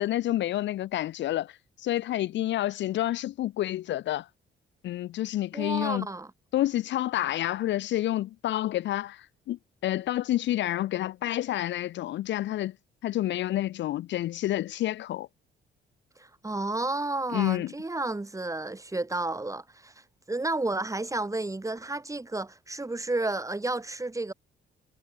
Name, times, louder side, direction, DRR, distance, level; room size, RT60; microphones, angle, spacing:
voice 1, 0.0-4.3 4.8-6.1 6.5-12.7 13.0-15.3 17.3-17.7, left 14 dB, 65° left, 0.5 m, -29 dB
voice 2, 5.5-6.3 16.2-19.9 20.3-24.3, right 2 dB, 15° right, 4.7 m, -31 dB
cardioid pair, 90°, 20 cm